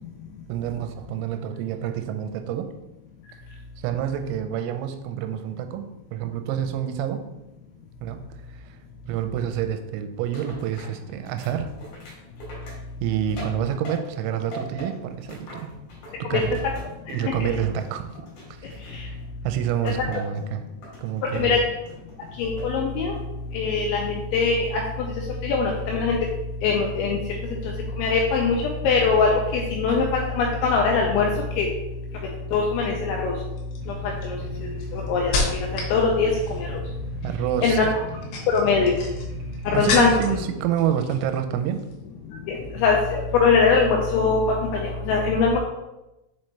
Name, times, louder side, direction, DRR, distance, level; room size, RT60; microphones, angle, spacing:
voice 1, 0.5-2.7 3.8-7.3 8.0-8.8 9.1-11.7 13.0-15.7 16.2-16.6 17.1-18.1 18.5-20.6 21.0-21.6 37.2-37.8 39.7-41.8, right 9 dB, 90° right, 7 dB, 3.3 m, -28 dB
sound 1, 10.3-14.2 14.5-17.3 17.6-19.3 19.9-20.4 20.8-21.5 21.9-22.8 23.1-23.5, right 1 dB, 55° left, 2.9 m, -41 dB
voice 2, 17.1-17.5 19.0-19.1 19.8-19.9 21.3-21.6 22.4-23.1 23.5-25.1 25.4-26.2 26.6-27.2 28.0-28.6 28.8-31.3 31.6-31.7 32.5-33.3 33.9-34.4 34.6-36.8 37.6-37.9 38.5-39.0 39.7-40.4 42.5-44.4 44.7-45.6, left 4 dB, 90° left, 0 dB, 2.7 m, -22 dB
sound 2, 32.5-32.9 33.6-36.0 36.3-36.8 38.0-40.4 40.8-41.4 41.7-41.9, left 3 dB, 70° left, 3.0 m, -30 dB
sound 3, 33.8-40.7, right 3 dB, 70° right, 1.9 m, -40 dB
7.4 x 4.2 x 3.2 m, 0.95 s
omnidirectional pair, 6.0 m